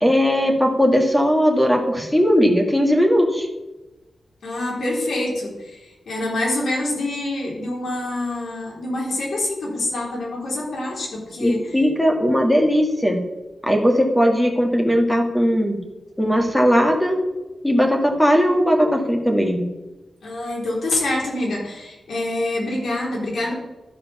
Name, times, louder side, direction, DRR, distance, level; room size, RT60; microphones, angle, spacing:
voice 1, 0.0-3.5 11.4-13.2 13.6-15.8 16.2-17.2 17.6-19.7, equal, 5° left, 2 dB, 1.7 m, -18 dB
voice 2, 4.4-11.8 20.2-23.5, left 1 dB, 85° left, -3 dB, 3.6 m, -26 dB
13.0 x 5.1 x 5.9 m, 1.1 s
wide cardioid pair, 130°, 0 cm